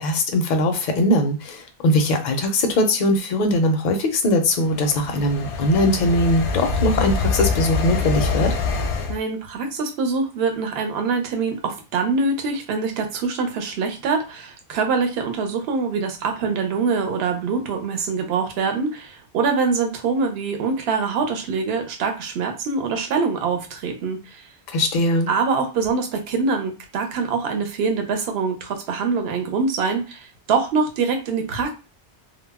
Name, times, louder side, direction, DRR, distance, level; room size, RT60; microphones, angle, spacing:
voice 1, 0.0-8.5 24.7-25.3, left 1 dB, 55° left, 5 dB, 0.5 m, -20 dB
sound 1, 4.5-9.2, left 4 dB, 80° left, 0.9 m, -25 dB
voice 2, 9.1-24.5 25.3-31.7, right 4 dB, 65° right, 4 dB, 0.8 m, -24 dB
2.2 x 2.0 x 3.4 m, 0.31 s
omnidirectional pair, 1.2 m